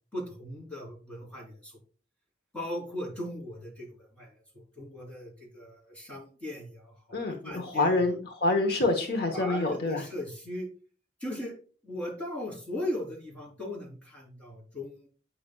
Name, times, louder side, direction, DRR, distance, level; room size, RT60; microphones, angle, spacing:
voice 1, 0.1-1.8 2.5-8.0 9.3-10.7 11.2-11.5 11.8-15.1, left 1 dB, 5° left, -3 dB, 3.0 m, -38 dB
voice 2, 7.1-10.0, left 2 dB, 60° left, 2 dB, 1.0 m, -27 dB
8.7 x 5.7 x 2.3 m, 0.40 s
head